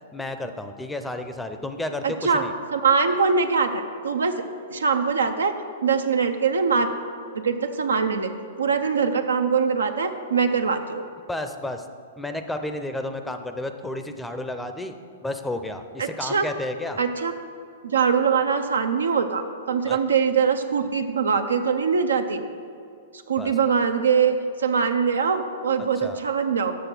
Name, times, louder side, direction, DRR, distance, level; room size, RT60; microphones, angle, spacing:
voice 1, 0.1-2.5 11.3-11.9 12.2-14.9 15.2-17.0 19.8-20.0 23.4-23.6 25.8-26.2, left 1 dB, 5° left, 7 dB, 0.5 m, -32 dB
voice 2, 2.0-2.4 2.7-4.4 4.7-5.5 5.8-6.9 7.3-8.3 8.6-11.0 16.0-16.5 17.0-17.3 17.8-22.4 23.3-26.8, right 6 dB, 90° right, 6 dB, 0.6 m, -22 dB
6.9 x 6.4 x 6.0 m, 2.4 s
hypercardioid pair, 120°, 0 cm